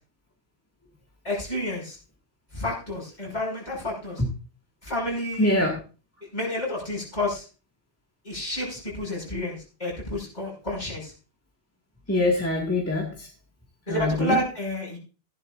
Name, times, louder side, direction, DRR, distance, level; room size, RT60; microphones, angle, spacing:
voice 1, 1.2-2.0 2.5-4.2 4.8-5.6 6.3-7.4 8.2-11.1 12.1-12.2 13.9-15.0, left 1 dB, 45° left, -3 dB, 5.8 m, -30 dB
voice 2, 5.4-5.7 12.1-13.3 13.9-14.4, left 2 dB, 15° left, -1 dB, 1.8 m, -24 dB
15.0 x 11.0 x 2.5 m, 0.34 s
omnidirectional pair, 1.1 m